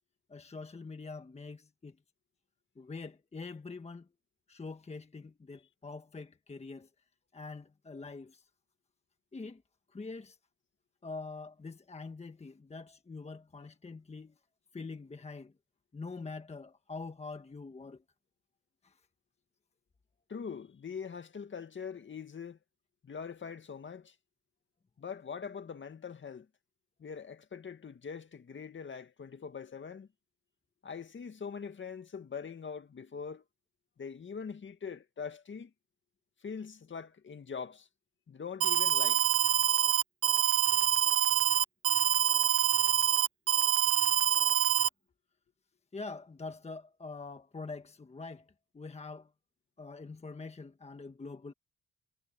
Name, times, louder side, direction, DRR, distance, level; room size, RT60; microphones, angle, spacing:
voice 1, 0.3-2.0 2.8-4.1 4.5-6.9 7.3-8.4 9.3-9.6 9.9-10.4 11.0-14.3 14.7-15.5 15.9-18.0 18.8-18.9 45.9-48.5 48.7-49.3 49.8-51.5, left 3 dB, 20° left, 1.3 m, -44 dB
voice 2, 20.3-22.6 23.0-24.1 25.0-26.5 27.0-30.1 30.8-33.4 34.0-35.7 36.4-37.9 38.3-39.2, left 6 dB, 40° left, 2.0 m, -42 dB
Alarm, 38.6-44.9, right 11 dB, 50° right, 0.5 m, -26 dB
cardioid pair, 90°, 30 cm